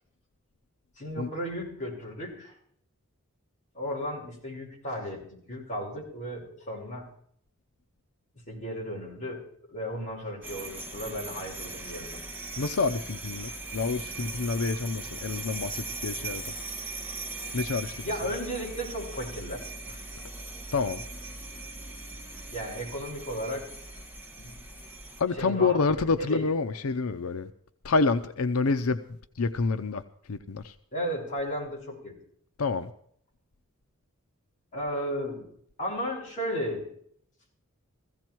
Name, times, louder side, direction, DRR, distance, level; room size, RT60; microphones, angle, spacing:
voice 1, 1.0-2.5 3.7-7.1 8.5-12.2 18.0-20.0 22.5-23.7 24.4-24.6 25.4-26.5 30.9-32.2 34.7-35.5 35.8-36.9, equal, 35° left, 5.9 m, -35 dB
sound 1, 10.4-25.2, right 2 dB, 10° right, 1.5 m, -39 dB
voice 2, 12.6-16.5 17.5-17.9 20.7-21.0 25.2-27.5 27.8-30.0 30.3-30.8 32.6-32.9, left 4 dB, 85° left, 0.7 m, -28 dB
16.0 x 15.5 x 4.6 m
head